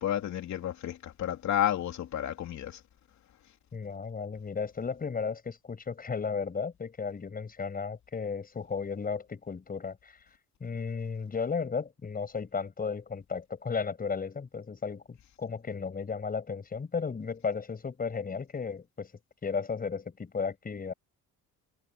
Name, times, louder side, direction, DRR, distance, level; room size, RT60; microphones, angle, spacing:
voice 1, 0.0-2.8, left 11 dB, 55° left, 3.0 m, -31 dB
voice 2, 3.7-10.2 10.6-19.1 19.4-20.9, left 5 dB, 25° left, 6.3 m, -34 dB
cardioid pair, 140°, 33 cm